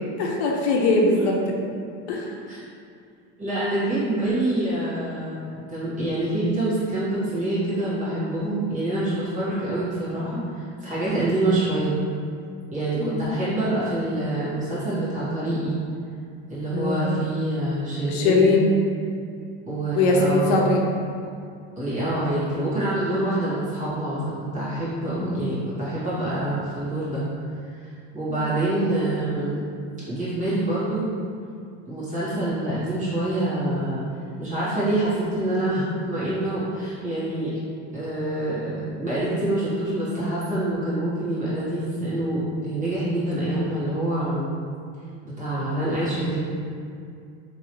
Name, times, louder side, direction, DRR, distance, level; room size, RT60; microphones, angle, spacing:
voice 1, 0.2-1.4 1.6-1.7 2.1-2.4 13.0-13.2 16.7-17.2 18.1-18.7 20.0-20.8 25.1-25.4 28.3-28.5, left 3 dB, 80° left, 0 dB, 0.6 m, -21 dB
voice 2, 3.4-5.4 5.7-11.9 12.7-15.8 16.5-18.6 19.6-20.7 21.7-24.2 24.5-27.2 28.1-29.6 30.0-31.1 31.8-34.0 34.4-37.6 37.9-44.5 45.4-46.4, right 1 dB, 25° right, -10 dB, 1.3 m, -26 dB
3.0 x 2.7 x 2.9 m, 2.4 s
supercardioid pair, 135°, 32 cm